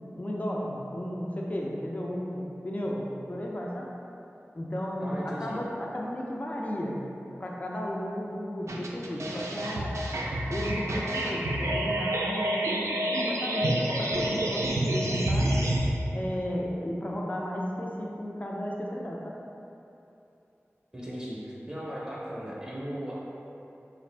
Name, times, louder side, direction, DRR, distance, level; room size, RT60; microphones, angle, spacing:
voice 1, 0.2-3.9 4.5-7.0 7.4-10.0 10.5-15.5 16.1-19.3, equal, 30° left, -3 dB, 0.4 m, -34 dB
voice 2, 5.0-5.6 20.9-23.1, equal, 15° right, -6 dB, 0.6 m, -37 dB
sound 1, 8.7-15.9, right 1 dB, 85° right, 0.3 m, -28 dB
3.4 x 2.4 x 3.2 m, 2.9 s
wide cardioid pair, 45°, 5 cm